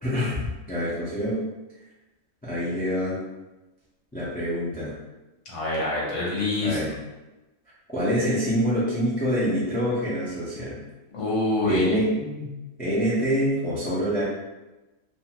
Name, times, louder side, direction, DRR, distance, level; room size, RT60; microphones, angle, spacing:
voice 1, 0.0-1.4 2.4-3.2 4.1-5.0 6.6-7.0 7.9-10.8 11.6-12.5 12.8-14.2, equal, 15° left, -9 dB, 0.3 m, -26 dB
voice 2, 5.5-6.8 11.1-11.8, left 2 dB, 65° left, -5 dB, 1.1 m, -25 dB
2.5 x 2.4 x 2.9 m, 1.1 s
omnidirectional pair, 1.4 m